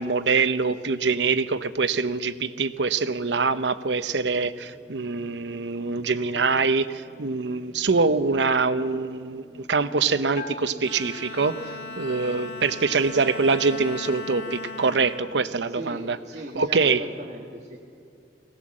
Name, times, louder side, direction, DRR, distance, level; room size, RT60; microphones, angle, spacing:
voice 1, 0.0-16.2 16.5-17.0, right 4 dB, 90° right, 13 dB, 0.8 m, -24 dB
sound 1, 4.5-12.8, equal, ahead, 1.7 m, -48 dB
Bell, 10.3-12.0, left 4 dB, 40° left, 0.9 m, -42 dB
Bowed string instrument, 10.8-16.3, left 3 dB, 75° left, 1.5 m, -39 dB
voice 2, 15.7-17.8, right 1 dB, 40° right, -1 dB, 1.5 m, -39 dB
21.5 x 17.5 x 7.5 m, 2.3 s
head